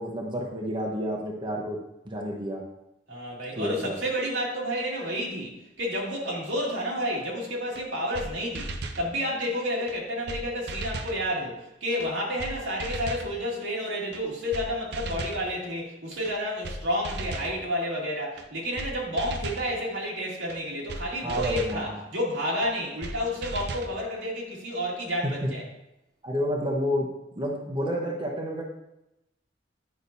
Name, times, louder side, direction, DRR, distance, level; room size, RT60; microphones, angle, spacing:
voice 1, 0.0-1.8 2.0-2.6 3.6-3.9 21.2-22.0 26.2-27.1 27.4-28.6, equal, 25° right, 0 dB, 0.8 m, -30 dB
voice 2, 3.1-25.7, equal, 90° right, -4 dB, 2.3 m, -30 dB
sound 1, 7.8-7.9 8.1-8.3 8.6-9.0 9.9-10.0 10.3-10.4 10.7-11.2 12.0-12.1 12.4-12.5 12.8-13.3 14.1-14.2 14.5-14.7 14.9-15.4 16.3-16.4 16.6-16.8 17.0-17.5 18.4-18.5 18.8-18.9 19.2-19.7 20.5-20.6 20.9-21.0 21.3-21.8 22.6-22.7 23.0-23.2 23.4-23.9, right 2 dB, 60° right, 0.6 m, -35 dB
9.9 x 5.6 x 2.7 m, 0.89 s
head